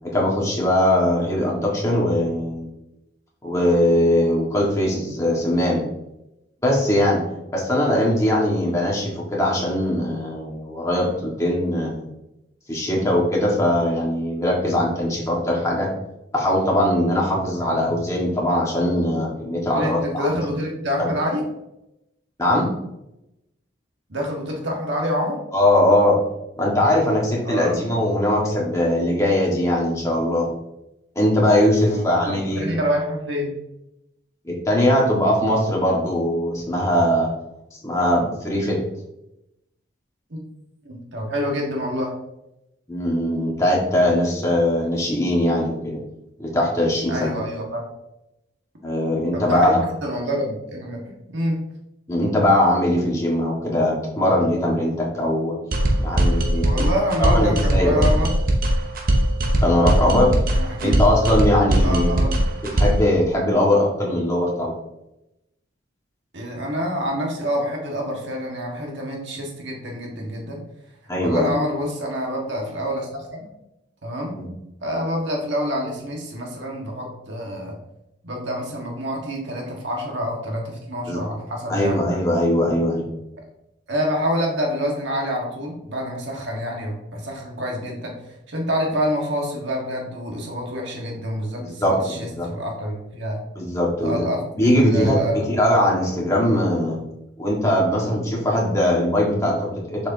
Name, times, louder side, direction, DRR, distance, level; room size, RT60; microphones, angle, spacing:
voice 1, 0.0-2.7 3.4-5.8 6.6-7.2 7.5-12.1 12.7-15.9 16.3-20.4 21.0-21.1 22.4-22.7 25.5-26.2 26.6-30.5 31.1-32.8 34.4-37.3 37.7-38.8 42.9-46.0 46.4-47.3 48.8-49.9 52.1-55.5 56.0-56.7 57.2-58.0 59.6-60.4 60.8-64.8 71.1-71.5 74.3-74.5 81.1-81.2 81.7-83.1 91.6-92.5 93.5-94.2 94.5-97.0 97.4-100.1, left 1 dB, 15° left, -3 dB, 1.5 m, -21 dB
voice 2, 17.6-18.0 19.7-21.4 24.1-25.4 27.4-27.8 31.8-33.5 40.3-40.4 40.8-42.1 47.1-47.9 49.3-49.7 50.0-51.0 51.3-51.6 56.6-58.3 60.5-61.0 61.8-62.3 66.3-70.6 71.2-73.5 74.0-74.4 74.8-77.8 78.2-82.1 83.9-88.1 88.5-93.4 94.0-95.5, equal, 65° right, 0 dB, 1.5 m, -27 dB
sound 1, 55.7-63.1, right 1 dB, 45° right, 0.8 m, -20 dB
6.9 x 5.0 x 2.7 m, 0.87 s
head